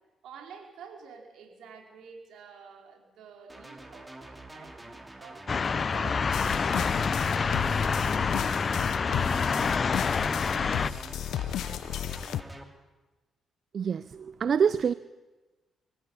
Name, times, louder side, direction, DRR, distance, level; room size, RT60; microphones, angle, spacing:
voice 1, 0.2-5.5 5.9-10.1, right 6 dB, 80° right, 4.4 m, -50 dB
sound 1, 3.5-12.6, right 1 dB, 15° right, 3.0 m, -46 dB
sound 2, 5.5-10.9, left 5 dB, 40° left, 0.7 m, -27 dB
sound 3, 6.3-12.4, left 10 dB, 80° left, 0.8 m, -34 dB
voice 2, 13.7-14.9, right 7 dB, 55° right, 0.6 m, -26 dB
24.5 x 14.0 x 8.7 m
cardioid pair, 80°, 0 cm